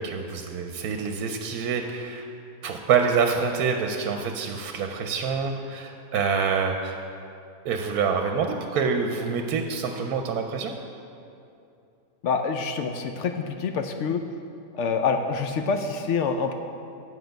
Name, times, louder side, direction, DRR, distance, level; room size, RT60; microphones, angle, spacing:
voice 1, 0.0-2.3 2.6-7.0 7.6-10.8, right 5 dB, 80° right, 4 dB, 1.1 m, -26 dB
voice 2, 12.2-14.2 14.7-16.5, left 5 dB, 70° left, 6 dB, 0.7 m, -26 dB
8.0 x 7.8 x 5.2 m, 2.6 s
omnidirectional pair, 1.6 m